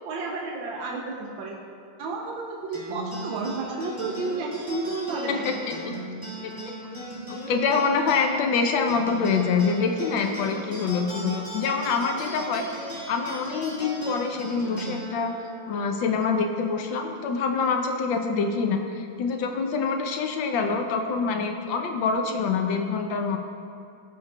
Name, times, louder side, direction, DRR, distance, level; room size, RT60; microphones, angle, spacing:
voice 1, 0.0-1.6 2.0-5.4, right 3 dB, 70° right, -1 dB, 1.4 m, -31 dB
sound 1, 2.7-17.5, equal, 10° right, 1.5 m, -38 dB
voice 2, 7.5-15.3 15.7-23.4, left 5 dB, 70° left, 4 dB, 1.4 m, -25 dB
16.0 x 6.6 x 2.3 m, 2.4 s
omnidirectional pair, 2.4 m